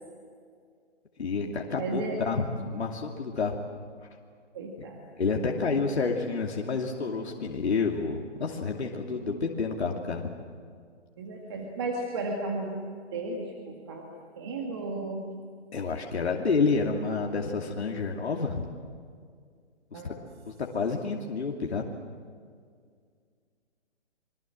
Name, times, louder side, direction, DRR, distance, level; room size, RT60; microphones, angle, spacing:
voice 1, 1.2-3.6 5.2-10.2 15.7-18.6 19.9-20.1 20.5-21.8, left 4 dB, 65° left, 0 dB, 2.7 m, -29 dB
voice 2, 1.8-2.2 4.5-5.0 11.2-12.7 13.1-14.1 14.4-15.2 19.9-20.2, right 3 dB, 20° right, 1 dB, 1.9 m, -34 dB
28.0 x 23.5 x 7.6 m, 2.1 s
hypercardioid pair, 175°, 35 cm